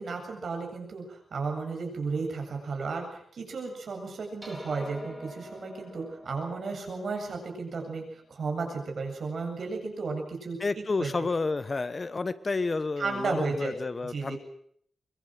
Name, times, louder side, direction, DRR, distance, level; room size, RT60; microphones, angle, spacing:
voice 1, 0.0-8.0 8.3-11.1 13.0-13.7 14.1-14.4, right 4 dB, 60° right, 3 dB, 7.8 m, -34 dB
sound 1, 4.4-9.1, equal, 5° right, 5.4 m, -48 dB
voice 2, 10.6-14.4, left 3 dB, 35° left, 14 dB, 1.1 m, -30 dB
24.0 x 23.0 x 7.7 m, 0.68 s
wide cardioid pair, 135°, 0 cm